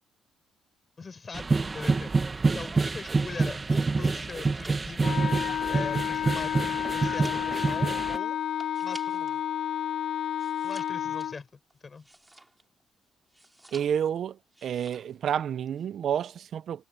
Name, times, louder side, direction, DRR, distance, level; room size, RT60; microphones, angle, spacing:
voice 1, 1.0-2.1 2.5-5.2 5.7-8.4 8.8-9.4 10.6-12.1, left 4 dB, 35° left, 5.8 m, -41 dB
sound 1, 1.3-8.2, right 3 dB, 30° right, 1.5 m, -27 dB
sound 2, 4.1-9.4 9.8-12.8 13.3-14.2 14.5-15.2 15.5-15.9, right 1 dB, 10° right, 5.8 m, -52 dB
Wind instrument woodwind instrument, 5.0-11.4, left 10 dB, 65° left, 0.3 m, -30 dB
voice 2, 13.7-14.4 14.6-16.9, right 9 dB, 65° right, 0.5 m, -29 dB
cardioid pair, 90°, 0 cm